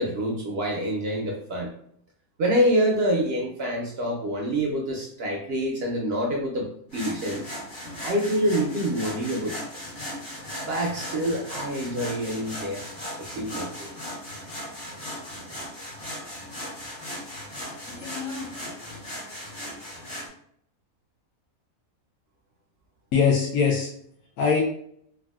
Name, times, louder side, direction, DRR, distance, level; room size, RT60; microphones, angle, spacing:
voice 1, 0.0-1.7 2.4-6.7 6.9-7.4 8.0-9.5 10.6-12.8 13.3-13.9, equal, 65° right, -1 dB, 0.6 m, -26 dB
sound 1, 6.9-20.3, left 1 dB, 55° left, 1.5 m, -37 dB
voice 2, 17.9-18.5 23.1-23.9 24.4-24.6, left 6 dB, 85° left, -3 dB, 1.1 m, -23 dB
3.4 x 2.3 x 2.3 m, 0.66 s
omnidirectional pair, 1.5 m